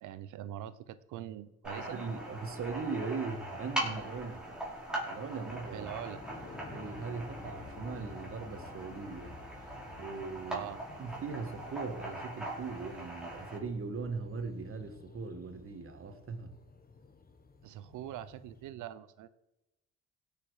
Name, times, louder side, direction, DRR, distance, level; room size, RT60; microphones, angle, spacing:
voice 1, 0.0-2.0 5.7-6.2 10.5-10.8 17.6-19.3, right 12 dB, 85° right, 15 dB, 0.8 m, -43 dB
sound 1, 1.6-13.6, right 1 dB, 5° right, 4.8 m, -41 dB
voice 2, 1.7-4.4 5.1-5.9 6.7-9.4 10.0-10.7 11.0-16.5, right 4 dB, 45° right, 8 dB, 1.7 m, -39 dB
sound 2, 5.5-18.7, left 4 dB, 30° left, 1.3 m, -52 dB
17.0 x 6.9 x 4.9 m, 0.96 s
cardioid pair, 90°, 30 cm